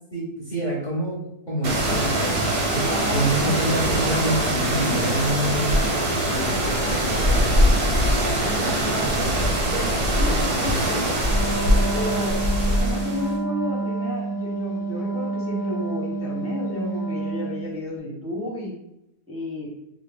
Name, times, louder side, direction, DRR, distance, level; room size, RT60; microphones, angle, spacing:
voice 1, 0.1-1.2 1.5-2.4 2.7-7.8, right 1 dB, 35° left, -6 dB, 0.8 m, -27 dB
sound 1, 1.6-13.3, right 1 dB, 55° right, 0.7 m, -22 dB
voice 2, 2.9-3.7 8.4-11.2 11.9-18.7 19.3-19.7, left 1 dB, 15° right, -7 dB, 0.6 m, -32 dB
Wind instrument woodwind instrument, 11.2-17.7, right 3 dB, 70° left, 0.4 m, -28 dB
3.6 x 2.1 x 3.4 m, 0.81 s
omnidirectional pair, 1.7 m